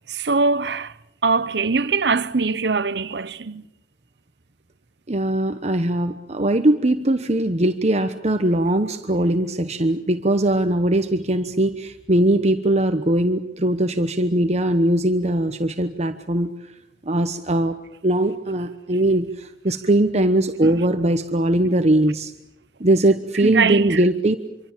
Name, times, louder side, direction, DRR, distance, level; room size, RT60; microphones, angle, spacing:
voice 1, 0.1-0.9 1.2-3.6 20.6-20.8 23.4-24.0, right 4 dB, 70° right, 0.9 m, -22 dB
voice 2, 5.1-16.5 17.1-17.8 18.0-22.3 22.8-24.4, right 1 dB, 40° right, 1.1 m, -20 dB
26.5 x 24.5 x 7.4 m
head